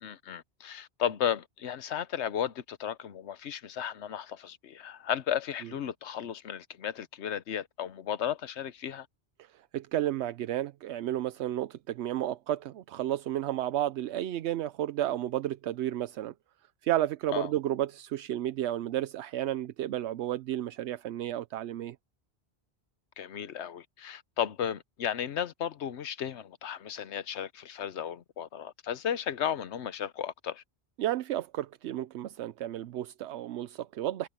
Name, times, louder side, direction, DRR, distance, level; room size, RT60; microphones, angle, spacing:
voice 1, 0.0-9.1 17.3-17.5 23.2-30.6, left 9 dB, 85° left, 1.1 m, -34 dB
voice 2, 9.7-16.3 16.8-22.0 31.0-34.3, right 13 dB, 85° right, 0.9 m, -32 dB
omnidirectional pair, 1.1 m